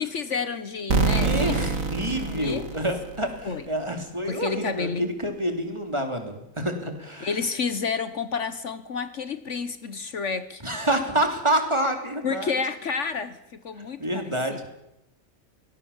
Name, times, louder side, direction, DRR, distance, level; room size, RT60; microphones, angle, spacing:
voice 1, 0.0-1.6 2.0-2.7 3.4-3.6 4.3-5.1 7.2-10.6 12.2-13.4 13.6-14.6, left 5 dB, 60° left, 13 dB, 1.4 m, -30 dB
sound 1, 0.9-3.6, right 4 dB, 75° right, 2.3 m, -26 dB
voice 2, 1.2-7.3 10.6-12.5 14.0-14.7, right 1 dB, 20° right, 5 dB, 3.3 m, -27 dB
24.0 x 19.5 x 7.3 m, 0.86 s
omnidirectional pair, 1.4 m